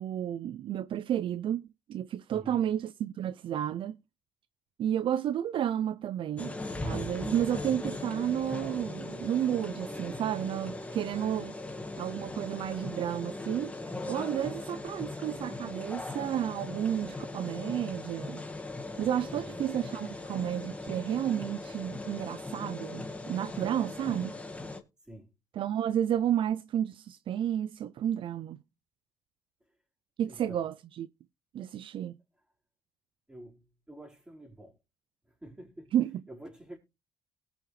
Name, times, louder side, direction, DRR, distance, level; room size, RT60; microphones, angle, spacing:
voice 1, 0.0-1.6 1.9-4.0 4.8-11.5 12.0-13.7 14.1-18.4 19.0-24.4 25.5-28.6 30.2-31.1 31.5-32.2 35.9-36.2, right 10 dB, 60° right, 0.5 m, -31 dB
voice 2, 2.3-2.6 19.3-19.7 25.1-25.3 30.3-30.7 33.3-34.8 35.4-35.9 36.3-36.8, right 1 dB, 10° right, 4.6 m, -48 dB
sound 1, 6.4-24.8, left 2 dB, 15° left, 1.6 m, -39 dB
19.0 x 6.3 x 3.3 m
cardioid pair, 90°, 10 cm